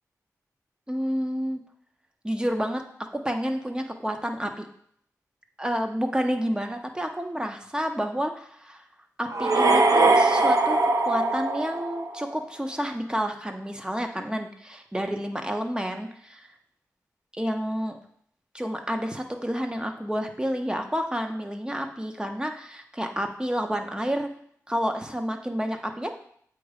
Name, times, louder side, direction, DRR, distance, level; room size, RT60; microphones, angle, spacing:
voice 1, 0.9-1.6 2.2-2.8 3.1-4.7 5.6-8.8 9.2-16.5 17.3-18.0 18.5-24.3 24.7-26.1, equal, 15° right, 4 dB, 0.9 m, -29 dB
sound 1, 9.3-12.3, right 2 dB, 60° right, 0.7 m, -21 dB
7.8 x 3.1 x 4.9 m, 0.65 s
cardioid pair, 45°, 7 cm